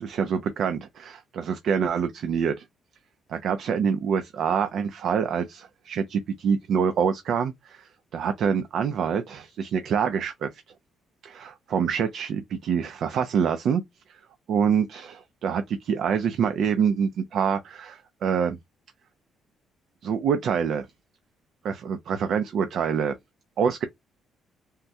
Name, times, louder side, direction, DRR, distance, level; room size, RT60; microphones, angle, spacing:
voice 1, 0.0-2.5 3.3-10.5 11.2-13.8 14.1-14.2 14.5-18.6 20.0-20.9 21.6-23.2 23.6-23.9, right 7 dB, 60° right, 0.4 m, -26 dB
3.5 x 2.1 x 2.7 m
cardioid pair, 140°, 0 cm